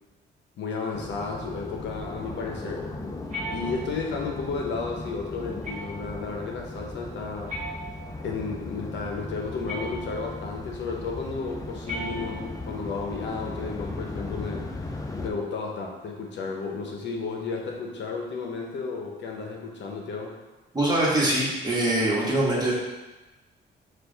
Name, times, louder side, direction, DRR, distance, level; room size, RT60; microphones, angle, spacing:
voice 1, 0.6-2.8 3.5-7.5 8.2-14.7 15.2-20.4, left 4 dB, 65° left, 0 dB, 0.8 m, -33 dB
sound 1, 0.9-15.3, left 2 dB, 15° left, 0.5 m, -37 dB
sound 2, 3.3-4.2 5.6-6.2 7.5-8.4 9.7-10.4 11.8-12.7, equal, 35° right, 1.1 m, -37 dB
voice 2, 20.7-22.7, right 1 dB, 20° right, -5 dB, 1.3 m, -23 dB
4.7 x 2.5 x 3.9 m, 1.2 s
cardioid pair, 90°, 20 cm